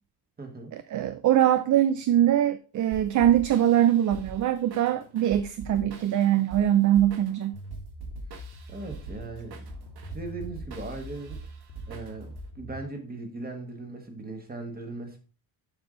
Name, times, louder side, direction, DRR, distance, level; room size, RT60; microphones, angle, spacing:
voice 1, 0.4-0.8 8.7-9.7 10.1-11.4 11.9-15.2, right 3 dB, 20° right, 1.6 m, -38 dB
voice 2, 0.9-7.6, right 11 dB, 50° right, 0.5 m, -22 dB
sound 1, 2.9-12.5, right 4 dB, 65° right, 1.6 m, -43 dB
sound 2, 7.5-12.9, left 1 dB, 70° left, 1.7 m, -43 dB
7.1 x 5.5 x 3.8 m
cardioid pair, 145°, 41 cm